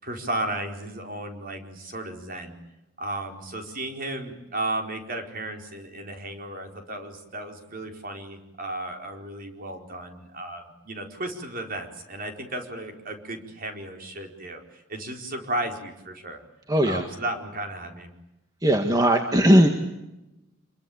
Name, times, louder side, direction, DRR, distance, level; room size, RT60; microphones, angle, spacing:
voice 1, 0.0-2.6 3.0-16.4 16.8-18.1, right 1 dB, 45° right, 4 dB, 4.6 m, -34 dB
voice 2, 16.7-17.0 18.6-19.7, equal, 20° right, 4 dB, 1.8 m, -18 dB
27.5 x 23.5 x 8.7 m, 0.96 s
head